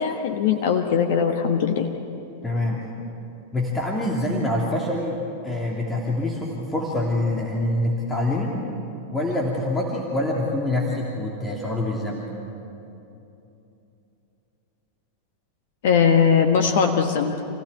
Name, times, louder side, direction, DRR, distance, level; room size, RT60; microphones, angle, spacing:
voice 1, 0.0-1.9 15.8-17.4, left 6 dB, 55° left, 5 dB, 1.3 m, -20 dB
voice 2, 2.4-2.8 3.5-5.2 5.4-8.5 9.1-12.3, left 1 dB, 15° left, -3 dB, 2.9 m, -25 dB
28.0 x 16.5 x 8.5 m, 2.9 s
figure-of-eight pair, 90°, 0 cm